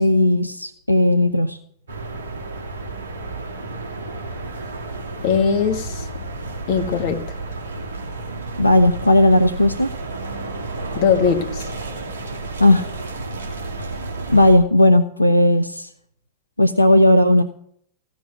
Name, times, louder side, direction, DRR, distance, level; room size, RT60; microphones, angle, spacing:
voice 1, 0.0-1.6 8.6-9.9 12.6-12.9 13.8-13.9 14.3-15.9 16.6-17.4, left 1 dB, 85° left, 13 dB, 0.6 m, -15 dB
sound 1, 1.9-14.5, right 2 dB, 65° right, 2.6 m, -31 dB
voice 2, 5.2-6.1 6.7-7.2 10.9-11.6, left 6 dB, 45° left, 5 dB, 1.7 m, -20 dB
15.5 x 6.2 x 8.0 m, 0.66 s
figure-of-eight pair, 90°, 0 cm